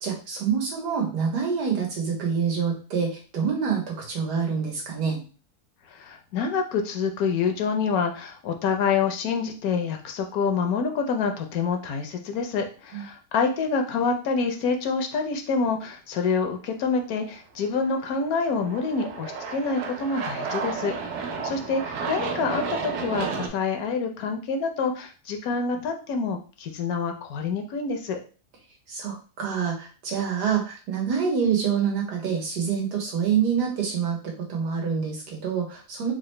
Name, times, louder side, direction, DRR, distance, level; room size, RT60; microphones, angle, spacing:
voice 1, 0.0-5.2 12.9-13.0 28.9-36.1, right 6 dB, 90° right, -1 dB, 1.6 m, -26 dB
voice 2, 5.9-21.0 21.4-28.2, left 5 dB, 70° left, 5 dB, 1.0 m, -27 dB
Aircraft, 17.8-23.5, right 5 dB, 75° right, 1.1 m, -32 dB
3.8 x 2.1 x 3.1 m, 0.36 s
omnidirectional pair, 1.7 m